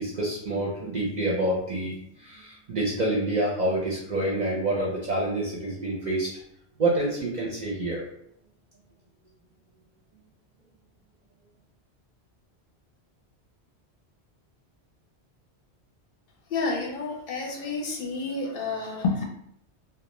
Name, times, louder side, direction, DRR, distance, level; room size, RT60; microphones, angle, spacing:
voice 1, 0.0-6.3 6.8-8.0, right 1 dB, 55° right, -4 dB, 0.5 m, -27 dB
voice 2, 16.5-19.2, left 3 dB, 65° left, 0 dB, 0.7 m, -29 dB
2.3 x 2.3 x 2.9 m, 0.72 s
omnidirectional pair, 1.1 m